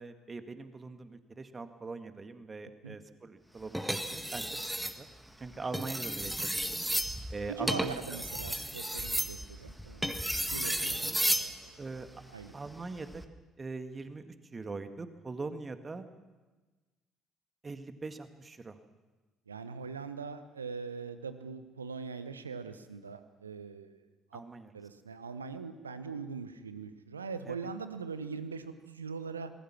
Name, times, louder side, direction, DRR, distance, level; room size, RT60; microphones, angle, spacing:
voice 1, 0.0-5.1 5.4-6.9 7.3-8.2 11.0-11.2 11.8-12.1 12.5-13.2 13.6-16.1 17.6-18.8 24.3-24.7 27.5-27.6, right 3 dB, 25° right, 9 dB, 1.9 m, -42 dB
sound 1, 3.7-5.0 5.6-11.5 13.0-13.2, right 1 dB, 5° right, 1.7 m, -33 dB
voice 2, 7.5-10.2 10.5-11.1 11.4-11.7 12.3-12.5 19.5-24.0 24.3-24.4 24.7-29.5, right 5 dB, 85° right, 11 dB, 1.0 m, -41 dB
26.0 x 20.0 x 6.1 m, 1.2 s
figure-of-eight pair, 50°, 0 cm